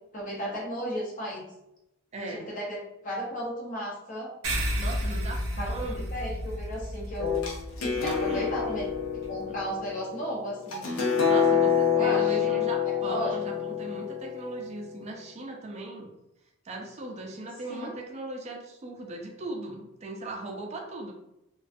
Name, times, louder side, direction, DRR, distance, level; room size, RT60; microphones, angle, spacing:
voice 1, 0.1-1.4 2.3-4.3 5.6-7.3 7.8-8.9 9.3-10.9 11.9-12.6 12.8-13.3 17.7-17.9, equal, 40° left, -4 dB, 0.6 m, -35 dB
voice 2, 2.1-2.5 4.8-6.1 7.9-8.5 9.5-9.6 11.3-16.1 16.6-21.1, right 2 dB, 30° right, 1 dB, 0.4 m, -38 dB
sound 1, 4.4-9.3, equal, 80° right, 0.6 m, -33 dB
sound 2, 7.2-14.9, left 7 dB, 90° left, 0.6 m, -27 dB
2.5 x 2.2 x 2.4 m, 0.87 s
head